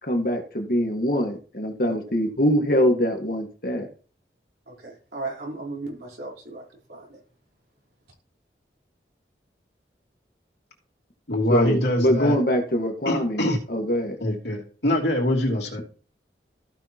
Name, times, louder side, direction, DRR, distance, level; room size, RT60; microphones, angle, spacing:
voice 1, 0.0-3.9 11.5-14.2, equal, 55° left, 4 dB, 1.7 m, -23 dB
voice 2, 4.7-6.6 6.9-7.2, right 3 dB, 70° right, -2 dB, 4.1 m, -36 dB
voice 3, 11.3-12.4 13.0-13.6 14.2-15.8, left 1 dB, 75° left, -1 dB, 2.9 m, -24 dB
15.5 x 6.2 x 3.0 m, 0.40 s
head